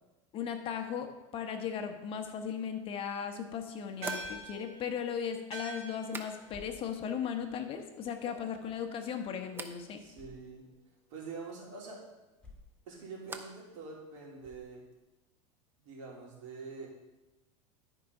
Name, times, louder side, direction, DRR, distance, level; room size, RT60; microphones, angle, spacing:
voice 1, 0.3-10.0, left 7 dB, 35° left, 5 dB, 1.0 m, -37 dB
sound 1, 4.0-6.8 7.1-7.7 8.0-8.6 9.5-9.8 12.3-13.7 14.0-14.6, right 3 dB, 15° right, 0.7 m, -48 dB
sound 2, 4.0-8.7, right 3 dB, 40° right, 1.9 m, -47 dB
sound 3, 4.2-4.6 5.3-5.4 6.5-7.2 7.8-7.9 10.1-10.6 11.2-11.3 12.4-12.9 13.3-13.4 14.4-15.0, left 3 dB, 5° left, 2.0 m, -55 dB
voice 2, 10.0-10.7 11.1-12.1 12.9-14.8 15.8-16.9, right 4 dB, 75° right, -2 dB, 3.0 m, -45 dB
11.5 x 4.8 x 5.3 m, 1.1 s
supercardioid pair, 135°, 16 cm